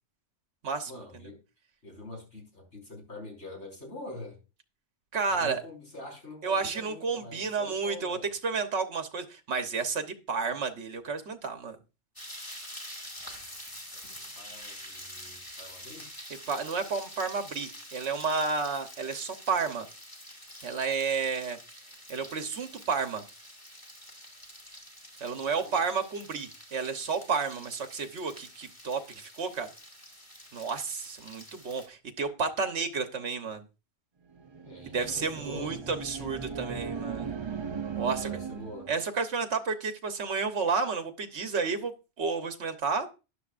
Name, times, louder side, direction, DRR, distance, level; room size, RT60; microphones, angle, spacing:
voice 1, 0.9-1.4 1.8-4.4 5.4-8.3 13.9-14.0 14.3-16.1 25.5-25.8 34.6-35.8 38.0-38.9, left 2 dB, 70° left, 0 dB, 5.3 m, -45 dB
voice 2, 5.1-5.6 6.4-8.2 8.4-11.8 16.5-19.9 20.6-21.6 22.1-23.2 25.2-29.7 30.5-33.6 34.9-37.4 38.0-38.3 38.9-41.9 42.2-43.1, right 5 dB, 65° right, 7 dB, 1.4 m, -31 dB
sound 1, 12.2-31.9, equal, 15° left, 2.3 m, -47 dB
sound 2, 34.3-39.0, right 6 dB, 40° right, 0.4 m, -37 dB
13.0 x 10.5 x 2.5 m, 0.30 s
omnidirectional pair, 1.2 m